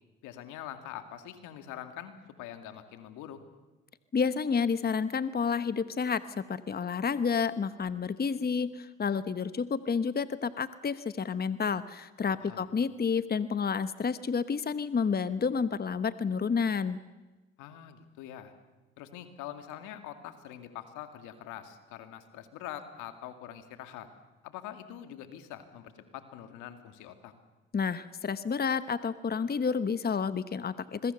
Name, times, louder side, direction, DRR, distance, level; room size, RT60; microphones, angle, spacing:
voice 1, 0.2-3.4 12.4-12.6 17.6-18.5 19.0-24.1 24.4-27.3, left 11 dB, 80° left, 8 dB, 2.3 m, -44 dB
voice 2, 4.1-17.0 27.7-31.1, left 5 dB, 30° left, 13 dB, 1.1 m, -30 dB
26.0 x 22.0 x 6.8 m, 1.2 s
hypercardioid pair, 55°, 30 cm